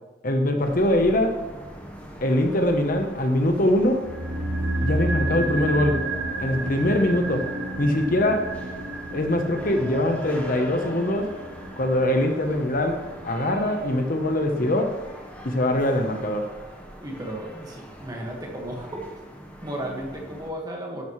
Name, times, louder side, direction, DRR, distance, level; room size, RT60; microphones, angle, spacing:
voice 1, 0.2-1.4 2.2-4.0 4.8-6.1 6.4-7.4 7.8-8.5 9.1-11.3 11.8-15.0 15.4-16.5, left 1 dB, 45° left, 5 dB, 0.9 m, -23 dB
sound 1, 0.6-20.5, equal, 10° left, 1.1 m, -42 dB
sound 2, 4.0-14.3 14.5-14.6, right 1 dB, 80° right, 1.1 m, -31 dB
voice 2, 17.0-19.0 19.6-21.0, right 1 dB, 20° right, 0 dB, 1.6 m, -34 dB
12.0 x 11.5 x 3.2 m, 1.2 s
head